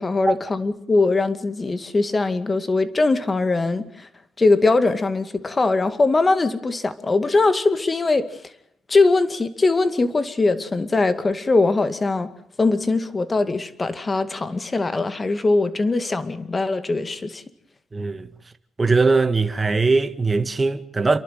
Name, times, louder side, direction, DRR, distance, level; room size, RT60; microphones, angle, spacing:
voice 1, 0.0-4.1 4.4-8.4 8.9-12.3 12.6-17.4, left 3 dB, 25° left, 2.2 m, -21 dB
voice 2, 17.9-18.3 18.8-21.2, right 3 dB, 25° right, 1.8 m, -20 dB
29.0 x 11.5 x 9.3 m
cardioid pair, 90°, 0 cm